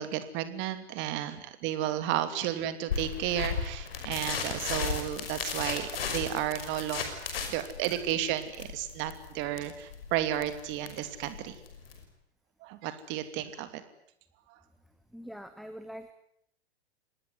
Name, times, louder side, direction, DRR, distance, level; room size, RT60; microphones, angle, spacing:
voice 1, 0.0-7.1 7.5-11.6 12.6-13.8, right 12 dB, 35° right, 11 dB, 2.8 m, -33 dB
sound 1, 2.9-12.0, left 6 dB, 60° left, 5.8 m, -36 dB
voice 2, 15.1-16.1, equal, ahead, 9 dB, 1.4 m, -43 dB
26.5 x 20.0 x 9.6 m, 0.72 s
figure-of-eight pair, 100°, 33 cm